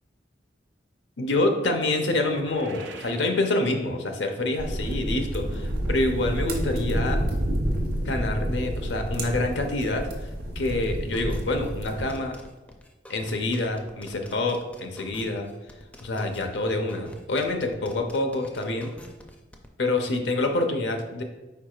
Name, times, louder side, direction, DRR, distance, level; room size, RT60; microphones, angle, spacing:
voice 1, 1.2-7.2 8.0-12.4 13.1-15.5 16.0-18.9 19.8-21.2, left 2 dB, 75° left, 4 dB, 0.6 m, -27 dB
sound 1, 2.1-4.4, right 4 dB, 75° right, 0.5 m, -46 dB
sound 2, 4.6-12.1, right 1 dB, 60° right, 0.9 m, -29 dB
sound 3, 11.1-19.7, equal, 5° left, 0.4 m, -47 dB
4.7 x 4.6 x 2.4 m, 1.1 s
head